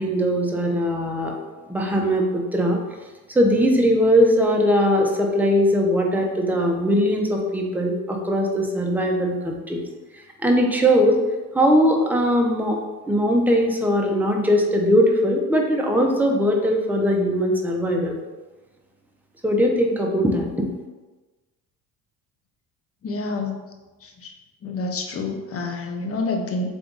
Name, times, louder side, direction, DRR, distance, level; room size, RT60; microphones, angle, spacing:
voice 1, 0.0-1.3 1.7-2.8 3.3-9.8 10.4-11.2 11.5-12.8 13.1-18.2 19.4-20.7, equal, 5° right, 0 dB, 0.7 m, -20 dB
voice 2, 23.0-23.6 24.0-24.3 24.6-26.7, left 3 dB, 40° left, 4 dB, 0.7 m, -28 dB
3.6 x 3.4 x 3.9 m, 1.2 s
cardioid pair, 100°, 37 cm